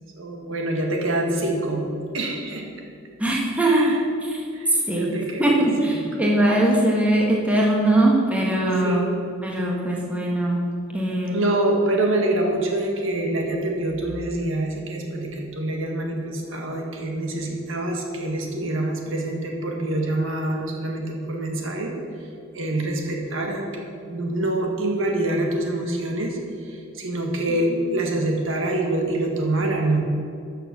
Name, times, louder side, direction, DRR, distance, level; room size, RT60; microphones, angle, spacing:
voice 1, 0.1-1.8 2.1-2.6 3.6-4.0 4.5-5.6 5.8-6.3 8.8-9.2 11.3-21.9 22.5-23.6 24.1-26.4 26.6-30.0, right 1 dB, 65° right, 1 dB, 1.7 m, -25 dB
voice 2, 3.2-5.1 5.4-9.1 9.4-10.6 10.9-11.4 27.7-27.8, right 1 dB, 5° right, -3 dB, 1.4 m, -21 dB
13.0 x 6.7 x 6.2 m, 2.5 s
head